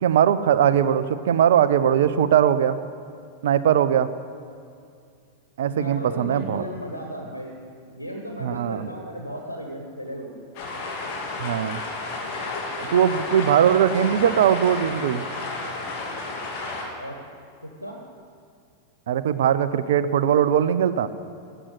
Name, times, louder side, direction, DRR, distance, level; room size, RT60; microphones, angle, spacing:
voice 1, 0.0-2.8 3.4-4.1 5.6-6.6 8.4-8.9 11.4-11.8 12.8-15.2 19.1-21.1, right 9 dB, 60° right, 14 dB, 0.6 m, -20 dB
voice 2, 5.6-7.5 7.9-10.4 17.0-17.2 17.6-18.0, equal, 90° right, 2 dB, 1.3 m, -35 dB
sound 1, 10.5-16.8, left 3 dB, 45° left, 3.0 m, -32 dB
15.0 x 7.9 x 9.6 m, 2.4 s
figure-of-eight pair, 90°, 0 cm